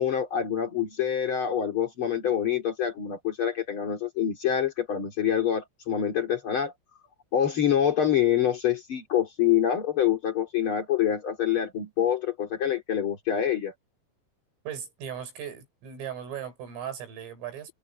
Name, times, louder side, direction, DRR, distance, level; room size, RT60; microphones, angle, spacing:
voice 1, 0.0-6.7 7.3-13.7, left 9 dB, 40° left, 2.1 m, -26 dB
voice 2, 14.7-17.7, right 9 dB, 85° right, 8.4 m, -37 dB
omnidirectional pair, 5.7 m